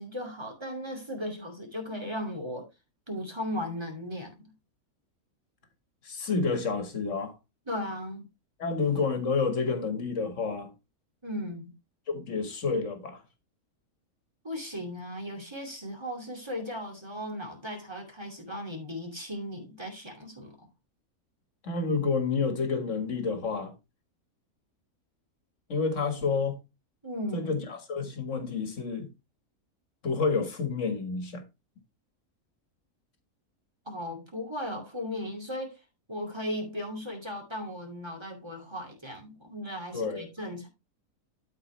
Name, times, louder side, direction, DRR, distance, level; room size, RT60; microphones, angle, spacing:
voice 1, 0.0-2.7 3.1-4.5 7.7-8.2 11.2-11.7 14.4-20.7 27.0-27.7 33.9-35.8 36.1-40.7, left 1 dB, 20° right, 2.4 m, -36 dB
voice 2, 6.0-7.3 8.6-10.7 12.1-13.2 21.6-23.7 25.7-26.6 27.3-29.1 30.0-31.4 39.9-40.3, left 4 dB, 55° left, 2.0 m, -29 dB
12.5 x 4.9 x 3.2 m
omnidirectional pair, 1.5 m